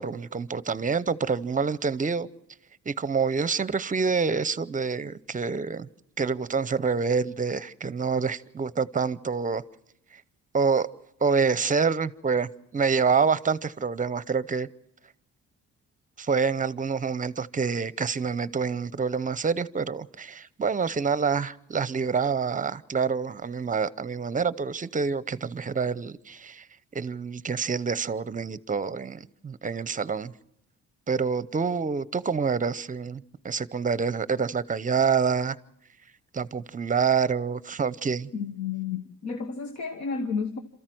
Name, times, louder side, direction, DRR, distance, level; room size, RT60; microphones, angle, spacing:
voice 1, 0.0-2.3 2.9-5.9 6.2-9.6 10.5-10.9 11.2-14.7 16.2-26.7 26.9-30.3 31.1-35.6 36.3-38.3, right 5 dB, 25° right, 0.7 m, -27 dB
voice 2, 38.3-40.6, left 5 dB, 65° left, 1.4 m, -31 dB
27.5 x 14.0 x 7.8 m
cardioid pair, 90°, 30 cm